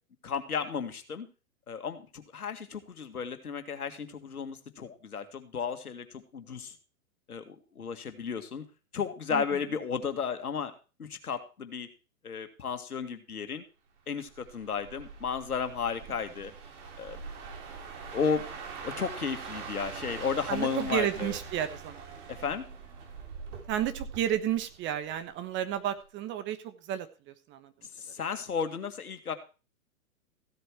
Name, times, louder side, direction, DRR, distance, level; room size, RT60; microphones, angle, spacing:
voice 1, 0.2-1.3 1.7-6.8 7.3-8.6 8.9-10.7 11.0-11.9 12.2-13.6 14.1-16.5 17.0-17.2 18.1-18.5 18.8-21.4 22.3-22.6 27.8-29.3, left 6 dB, 90° left, 7 dB, 2.1 m, -34 dB
sound 1, 14.2-25.3 25.7-26.0, right 5 dB, 55° right, 3.8 m, -43 dB
voice 2, 20.5-22.1 23.7-27.7, right 11 dB, 25° right, 12 dB, 1.3 m, -32 dB
15.5 x 8.1 x 4.7 m, 0.34 s
hypercardioid pair, 125°, 43 cm